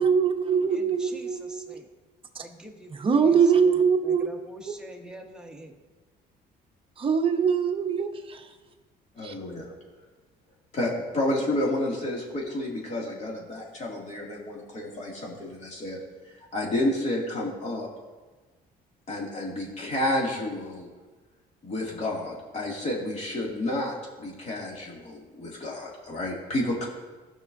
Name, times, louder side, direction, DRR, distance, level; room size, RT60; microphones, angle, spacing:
voice 1, 0.0-1.8 3.0-4.3 7.0-8.5 9.2-9.3, right 6 dB, 30° right, 4 dB, 1.0 m, -23 dB
voice 2, 0.7-1.9 2.4-5.7, right 1 dB, 5° right, 0 dB, 1.3 m, -45 dB
voice 3, 9.1-9.7 10.7-16.0 16.3-17.9 19.1-20.9 21.6-26.9, left 1 dB, 40° left, -3 dB, 2.5 m, -30 dB
16.5 x 6.0 x 2.7 m, 1.3 s
cardioid pair, 115°, 17 cm